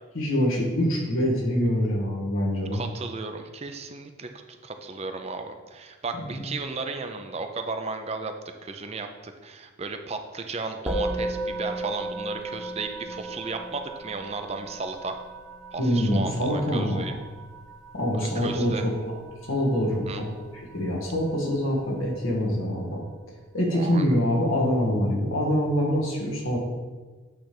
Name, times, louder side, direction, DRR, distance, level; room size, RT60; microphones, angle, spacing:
voice 1, 0.1-2.8 6.4-6.5 15.8-17.0 17.9-18.9 19.5-20.3 20.5-23.0 23.5-26.6, equal, 80° left, -2 dB, 1.9 m, -25 dB
voice 2, 2.7-4.3 4.6-15.2 15.7-17.1 18.1-18.9 20.1-20.2 23.7-24.1, right 3 dB, 30° right, 6 dB, 0.5 m, -34 dB
Musical instrument, 10.9-20.4, right 2 dB, ahead, 1.0 m, -35 dB
8.8 x 3.4 x 6.0 m, 1.3 s
head